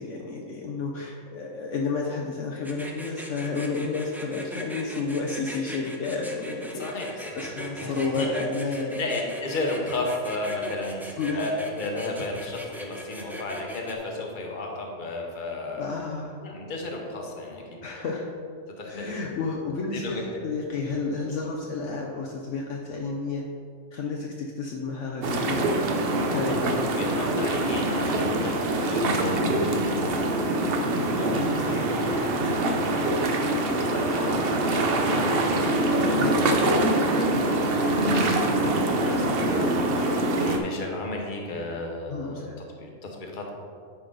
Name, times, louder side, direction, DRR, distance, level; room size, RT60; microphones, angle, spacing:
voice 1, 0.0-9.0 11.2-11.5 15.8-16.4 17.8-18.3 18.9-23.5 23.9-25.7 26.3-27.1 31.3-31.6 36.2-36.4 42.1-42.6, left 4 dB, 65° left, -1 dB, 1.0 m, -31 dB
sound 1, 2.6-13.9, equal, 5° right, 0.3 m, -39 dB
voice 2, 6.7-7.5 7.8-8.4 8.7-15.9 16.4-17.8 18.8-19.1 19.6-20.2 26.2-26.6 26.9-30.5 31.1-35.4 36.0-37.3 37.7-42.5 42.8-43.5, left 2 dB, 40° left, 0 dB, 1.1 m, -34 dB
sound 2, 25.2-40.6, right 1 dB, 50° right, 0.8 m, -24 dB
10.5 x 5.1 x 3.9 m, 2.2 s
omnidirectional pair, 1.5 m